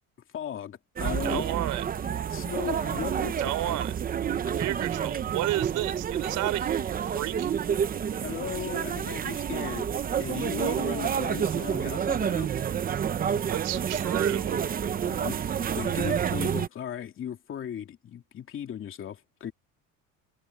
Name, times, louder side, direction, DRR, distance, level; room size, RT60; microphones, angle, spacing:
voice 1, 0.3-1.6 2.3-3.7 4.5-4.6 8.2-9.9 10.2-12.5 15.0-15.4 15.8-19.5, left 9 dB, 40° left, 2.7 m, -37 dB
sound 1, 1.0-16.7, right 8 dB, 25° right, 0.7 m, -29 dB
voice 2, 1.2-1.8 3.4-4.0 4.5-7.5 13.5-14.6, right 15 dB, 65° right, 4.5 m, -32 dB
cardioid pair, 150°, 33 cm